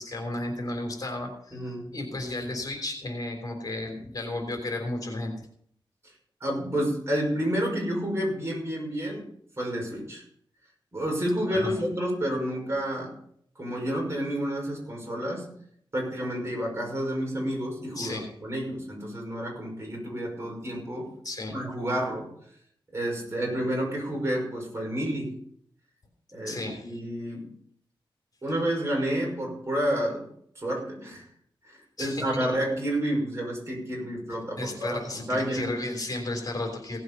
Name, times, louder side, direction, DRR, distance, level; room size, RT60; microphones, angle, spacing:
voice 1, 0.0-5.3 11.5-11.8 17.9-18.3 21.2-21.6 26.4-27.0 32.0-32.5 34.6-37.0, left 2 dB, 45° left, 3 dB, 3.4 m, -33 dB
voice 2, 1.5-1.9 6.4-9.2 9.6-10.2 10.9-13.1 13.6-15.5 15.9-21.1 21.5-22.3 22.9-25.3 26.3-27.5 28.4-30.3 30.6-31.2 31.7-35.7, equal, 30° right, -1 dB, 5.7 m, -30 dB
17.0 x 7.8 x 5.4 m, 0.66 s
wide cardioid pair, 115°, 9 cm